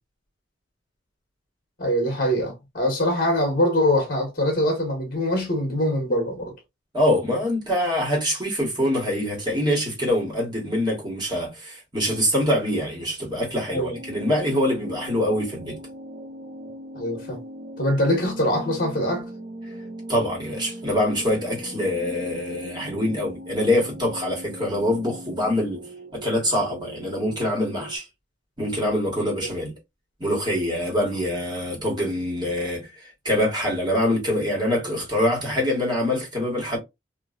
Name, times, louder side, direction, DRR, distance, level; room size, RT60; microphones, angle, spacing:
voice 1, 1.8-6.5 13.7-14.0 16.9-17.4 17.8-19.3, left 1 dB, 50° left, 1.1 m, -23 dB
voice 2, 6.9-15.8 20.1-25.8 26.1-28.0 28.6-29.7 30.2-36.8, left 1 dB, 25° right, 1.5 m, -24 dB
sound 1, 13.9-28.0, equal, 55° right, 0.8 m, -39 dB
3.0 x 2.6 x 2.5 m
head